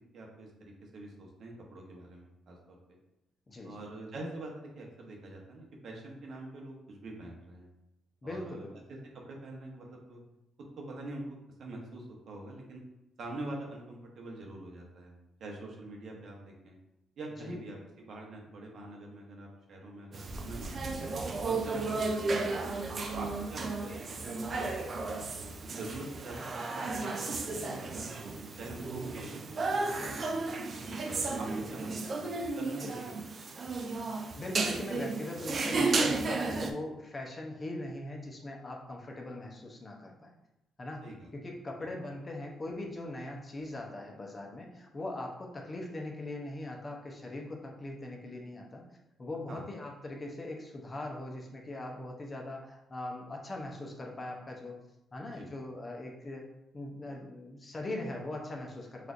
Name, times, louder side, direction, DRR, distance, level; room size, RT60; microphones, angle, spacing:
voice 1, 0.1-2.8 3.6-7.7 8.2-8.8 9.2-10.2 10.8-11.2 11.6-12.8 13.2-16.8 17.2-21.1 21.4-22.7 23.1-24.6 25.0-28.1 28.4-30.5 31.0-33.2 41.0-41.3 49.5-49.6 55.3-55.5, right 2 dB, 60° right, -1 dB, 0.8 m, -45 dB
voice 2, 8.2-8.7 17.4-17.6 30.8-31.2 34.4-40.3 40.8-41.0 41.3-48.8 49.2-54.7 55.1-56.5 56.7-59.1, left 2 dB, 30° left, 0 dB, 0.6 m, -40 dB
sound 1, 20.1-36.7, right 3 dB, 45° right, 0.4 m, -34 dB
4.2 x 2.5 x 2.4 m, 0.89 s
cardioid pair, 90°, 0 cm